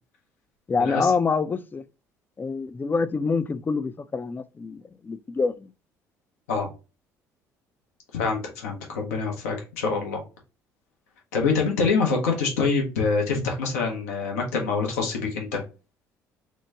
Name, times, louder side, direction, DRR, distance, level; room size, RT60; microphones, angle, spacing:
voice 1, 0.7-1.8 2.4-5.7, left 4 dB, 25° left, 0.3 m, -26 dB
voice 2, 8.1-10.2 11.3-15.6, left 4 dB, 85° left, 0.9 m, -25 dB
3.0 x 2.1 x 3.4 m
hypercardioid pair, 60°, 8 cm